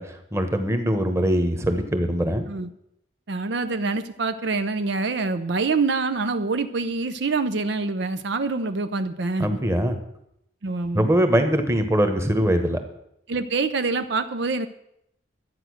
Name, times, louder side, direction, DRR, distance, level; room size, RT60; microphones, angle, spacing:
voice 1, 0.0-2.5 9.4-10.0 10.9-12.8, equal, 15° right, 6 dB, 1.2 m, -22 dB
voice 2, 3.3-9.6 10.6-11.1 13.3-14.7, right 3 dB, 60° right, 9 dB, 0.6 m, -25 dB
12.5 x 8.9 x 6.4 m, 0.77 s
head